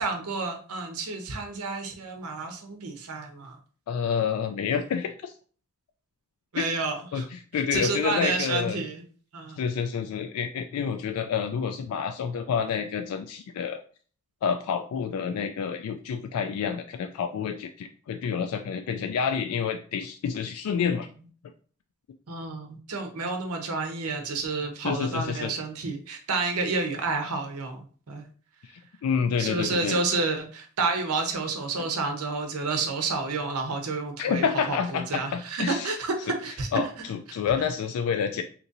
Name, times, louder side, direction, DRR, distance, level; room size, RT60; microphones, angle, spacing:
voice 1, 0.0-3.6 6.5-7.3 7.5-9.0 9.3-9.6 22.3-28.2 29.4-36.7 37.3-37.4, right 3 dB, 80° right, 4 dB, 0.8 m, -30 dB
voice 2, 3.9-5.3 6.6-6.7 7.1-8.8 9.6-13.8 14.4-21.1 24.8-25.5 29.0-30.0 34.2-35.9 36.7-38.4, left 6 dB, 75° left, 7 dB, 0.3 m, -28 dB
2.9 x 2.6 x 3.8 m, 0.43 s
head